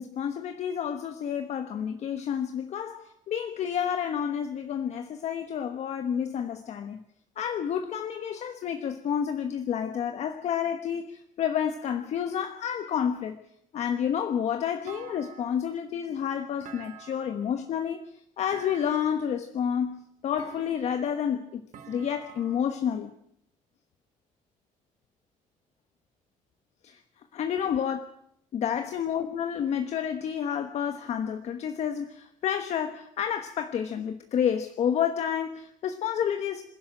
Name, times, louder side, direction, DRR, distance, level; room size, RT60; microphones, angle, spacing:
voice 1, 0.0-7.0 7.4-13.4 13.7-18.0 18.4-21.6 21.9-23.1 26.8-27.0 27.3-28.1 28.5-36.6, left 8 dB, 55° left, 8 dB, 1.2 m, -30 dB
Thump thud, 14.9-15.8 16.6-17.5 18.5-19.3 20.4-21.1 21.7-22.8, right 6 dB, 65° right, 2.4 m, -47 dB
26.5 x 11.5 x 8.9 m, 0.73 s
cardioid pair, 140°, 14 cm